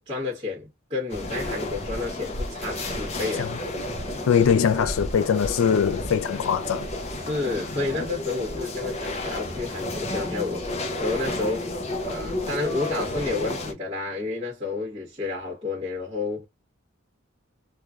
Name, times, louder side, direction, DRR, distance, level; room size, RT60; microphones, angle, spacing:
voice 1, 0.1-3.5 7.2-11.7 12.0-16.4, left 3 dB, 25° right, 1.2 m, -30 dB
sound 1, 1.1-13.7, left 1 dB, 30° left, 0.6 m, -31 dB
voice 2, 4.3-6.9, left 7 dB, 85° left, 0.4 m, -22 dB
3.1 x 2.4 x 2.4 m
head